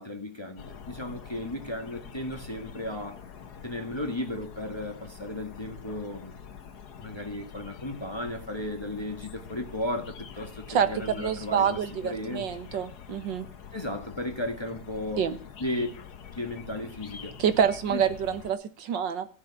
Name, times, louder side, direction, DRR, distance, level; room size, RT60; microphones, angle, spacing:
voice 1, 0.0-3.2 3.6-6.4 7.0-12.5 13.7-15.3 15.6-15.9 16.4-17.3 17.9-18.0, left 1 dB, 15° left, 4 dB, 1.7 m, -35 dB
sound 1, 0.6-18.5, left 7 dB, 60° left, 1.7 m, -46 dB
voice 2, 11.2-13.5 15.2-15.4 17.4-19.3, right 8 dB, 80° right, 11 dB, 1.9 m, -27 dB
15.0 x 6.4 x 9.5 m, 0.42 s
omnidirectional pair, 2.0 m